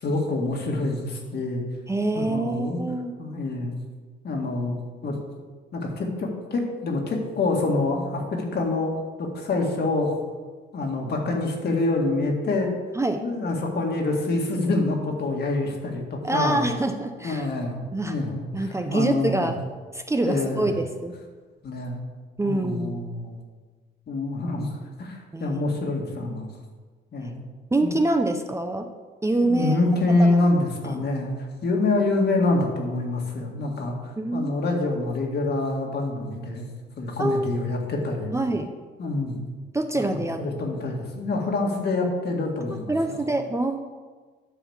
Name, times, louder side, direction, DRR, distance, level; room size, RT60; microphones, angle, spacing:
voice 1, 0.0-1.6 2.1-2.8 3.2-3.7 4.2-4.7 5.0-5.1 5.7-10.1 10.7-12.7 13.2-16.7 17.2-17.8 18.1-18.6 18.9-19.5 20.2-20.7 21.6-22.0 22.4-23.4 24.1-24.7 25.0-26.5 27.1-27.4 27.8-27.9 29.4-36.7 37.0-38.3 39.0-39.5 40.1-43.2, left 2 dB, 55° left, 1 dB, 2.0 m, -26 dB
voice 2, 1.9-3.1 12.9-13.2 16.2-17.4 17.9-18.2 18.5-19.6 19.9-21.1 22.4-23.0 25.3-25.6 27.7-28.9 29.2-29.8 30.1-30.4 30.8-31.1 34.2-34.6 37.2-37.5 38.3-38.7 39.7-40.4 42.7-43.8, right 2 dB, 15° right, 6 dB, 0.7 m, -25 dB
10.0 x 4.1 x 7.2 m, 1.4 s
cardioid pair, 90°, 20 cm